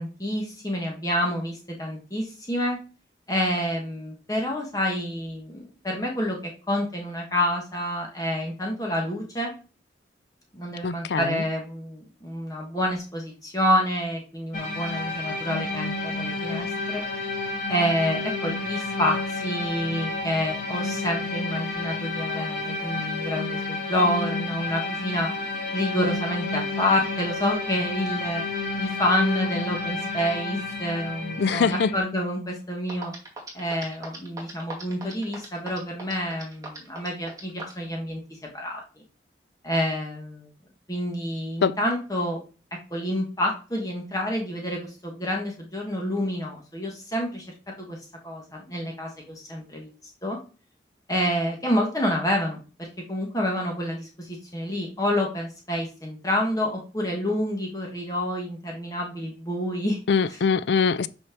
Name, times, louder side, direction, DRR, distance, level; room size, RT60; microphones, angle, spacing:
voice 1, 0.0-2.8 3.3-6.4 6.7-9.5 10.5-17.0 17.7-25.3 25.7-28.4 28.8-33.1 33.5-38.8 39.6-40.5 40.9-42.4 42.9-47.4 47.8-48.0 48.2-49.9 50.2-50.4 51.1-60.0, equal, 20° left, 1.6 m, -28 dB
voice 2, 10.8-11.4 31.4-31.9 41.6-41.7 60.1-61.1, left 5 dB, 75° left, 0.4 m, -23 dB
sound 1, 14.5-32.0, left 3 dB, 50° left, 1.9 m, -30 dB
sound 2, 32.6-32.7 32.9-37.8, right 3 dB, 20° right, 2.1 m, -38 dB
6.3 x 4.4 x 6.0 m
head